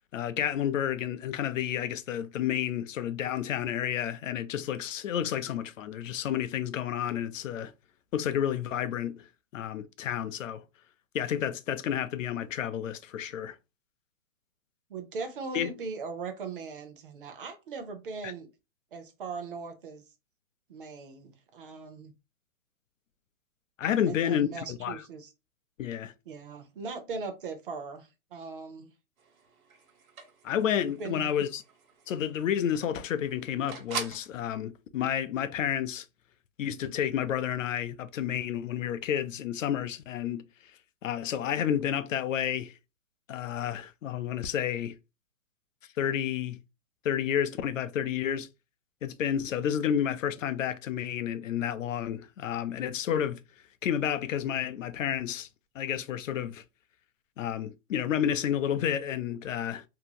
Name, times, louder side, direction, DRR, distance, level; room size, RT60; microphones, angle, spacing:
voice 1, 0.1-7.7 8.1-9.3 9.5-10.6 11.1-13.6 15.5-15.7 18.2-18.3 23.8-25.0 25.8-26.1 30.4-31.6 32.1-36.1 36.6-40.4 41.0-42.7 43.3-44.9 46.0-46.6 47.0-48.5 49.0-53.4 53.8-55.5 55.8-56.6 57.4-59.8, left 9 dB, 65° left, 0.5 m, -30 dB
voice 2, 14.9-18.5 18.9-20.0 20.7-22.1 24.1-25.3 26.3-28.9 31.0-31.4, right 4 dB, 40° right, 0.6 m, -39 dB
sound 1, 29.2-34.3, right 6 dB, 85° right, 1.1 m, -43 dB
2.8 x 2.8 x 2.2 m
hypercardioid pair, 160°, 41 cm